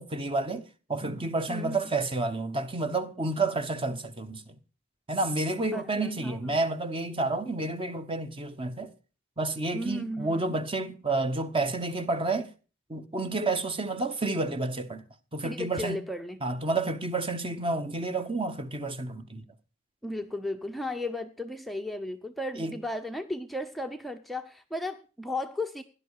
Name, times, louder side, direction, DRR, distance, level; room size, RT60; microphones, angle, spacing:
voice 1, 0.0-4.6 5.1-8.9 9.4-12.5 12.9-15.0 15.3-16.0 16.4-19.4 22.6-22.8, right 2 dB, 25° right, 1.1 m, -30 dB
voice 2, 1.5-1.8 5.7-6.4 9.7-10.5 15.4-16.4 20.0-25.8, left 1 dB, ahead, 0.7 m, -35 dB
17.5 x 11.0 x 4.8 m
head